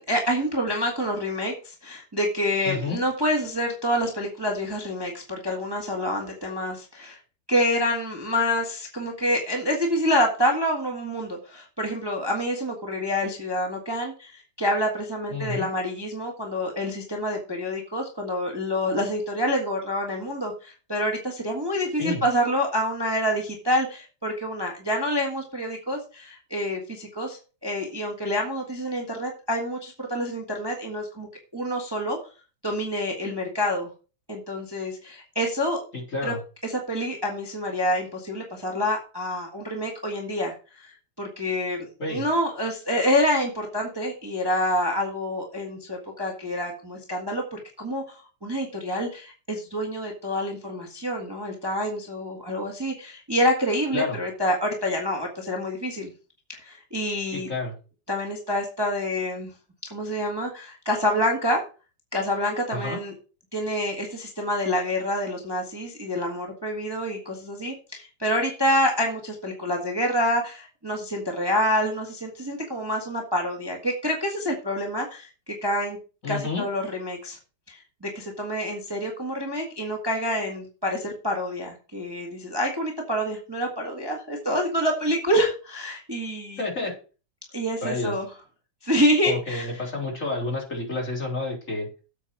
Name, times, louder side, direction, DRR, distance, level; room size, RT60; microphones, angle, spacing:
voice 1, 0.0-7.2 7.5-31.3 31.5-32.2 32.6-33.9 34.3-35.8 36.2-36.3 36.6-48.0 48.4-56.1 56.6-57.5 58.1-59.5 59.9-61.6 62.1-63.1 63.5-76.0 76.3-77.4 77.7-86.6 87.5-88.2 88.8-89.7, equal, 15° right, 1 dB, 1.5 m, -27 dB
voice 2, 2.6-3.0 15.3-15.7 22.0-22.2 35.9-36.4 42.0-42.3 53.9-54.2 57.3-57.7 62.7-63.0 76.2-76.6 86.6-86.9 87.8-88.2 89.2-91.9, left 3 dB, 40° left, -1 dB, 4.2 m, -29 dB
8.2 x 5.3 x 7.2 m, 0.35 s
omnidirectional pair, 2.1 m